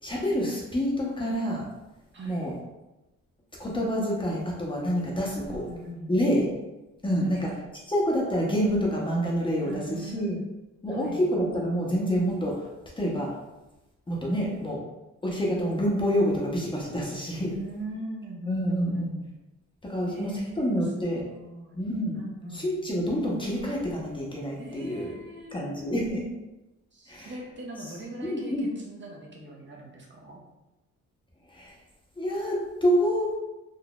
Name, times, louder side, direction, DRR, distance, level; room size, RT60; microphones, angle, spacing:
voice 1, 0.0-1.7 2.2-2.5 3.6-5.6 6.1-6.5 7.0-7.5 7.9-10.4 10.8-12.7 13.0-13.3 14.1-14.8 15.2-17.5 18.5-19.1 19.8-21.2 21.7-22.2 22.5-25.2 25.5-26.2 27.1-27.3 28.2-28.7 31.5-31.8 32.2-33.3, equal, 15° left, -3 dB, 0.8 m, -27 dB
voice 2, 2.1-2.5 5.5-6.4 7.2-7.6 9.6-10.3 10.9-11.3 14.3-14.8 17.5-19.3 20.1-21.8 22.1-22.7 24.6-25.8 26.9-30.4, right 2 dB, 40° right, -2 dB, 0.8 m, -41 dB
4.0 x 2.6 x 2.3 m, 1.0 s
cardioid pair, 90°, 30 cm